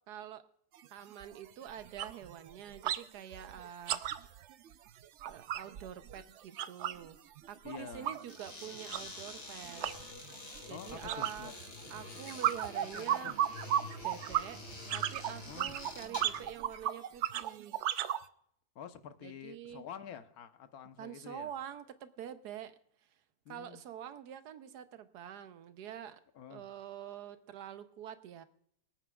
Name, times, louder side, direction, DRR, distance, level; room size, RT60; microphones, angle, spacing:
voice 1, 0.1-0.4 0.9-4.4 5.2-7.2 7.5-9.8 10.6-11.5 11.9-13.4 14.0-14.6 14.9-17.8 19.2-19.8 21.0-22.7 23.5-26.2 26.5-28.4, right 9 dB, 85° right, 11 dB, 1.3 m, -46 dB
sound 1, 0.8-0.9 1.2-1.4 1.7-3.1 3.3-7.1 7.4-18.2, right 11 dB, 70° right, 0.7 m, -36 dB
voice 2, 7.6-8.2 10.7-11.6 12.9-13.4 15.5-15.7 18.7-21.5 23.4-23.8 26.3-26.6, left 8 dB, 70° left, 9 dB, 1.3 m, -48 dB
sound 2, 8.2-16.5, left 2 dB, 90° left, 3.2 m, -47 dB
26.0 x 9.1 x 2.3 m, 0.69 s
omnidirectional pair, 1.7 m